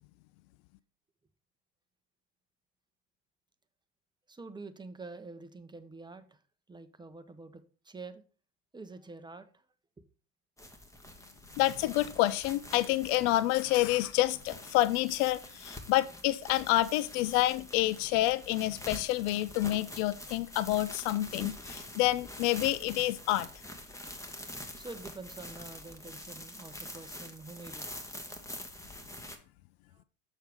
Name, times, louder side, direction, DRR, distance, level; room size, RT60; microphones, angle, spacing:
voice 1, 4.3-6.2 6.7-8.2 8.7-9.6 10.0-10.1 24.8-28.0 29.9-30.0, right 3 dB, 10° right, 0.7 m, -47 dB
sound 1, 10.6-29.4, left 1 dB, 5° left, 1.1 m, -46 dB
voice 2, 11.6-23.5, left 16 dB, 65° left, 0.5 m, -28 dB
6.6 x 6.5 x 3.4 m
hypercardioid pair, 85°, 46 cm